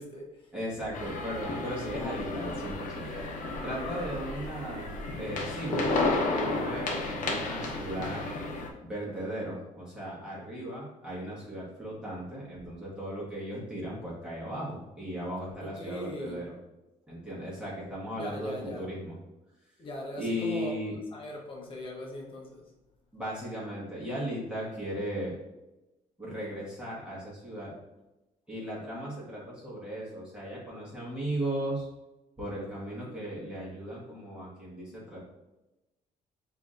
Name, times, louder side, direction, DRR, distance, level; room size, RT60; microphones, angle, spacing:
voice 1, 0.0-0.5 15.6-16.4 18.1-18.9 19.8-20.7 21.1-22.6, left 1 dB, 40° left, -1 dB, 0.9 m, -40 dB
voice 2, 0.5-3.1 3.6-4.9 5.2-5.9 6.3-8.2 8.8-16.5 17.1-19.2 20.2-20.9 23.1-25.3 26.2-27.7 28.5-31.9 32.4-35.2, equal, 5° right, -8 dB, 1.4 m, -36 dB
sound 1, 0.9-8.7, left 2 dB, 65° left, 0.8 m, -32 dB
6.9 x 2.8 x 2.5 m, 1.0 s
cardioid pair, 150°, 14 cm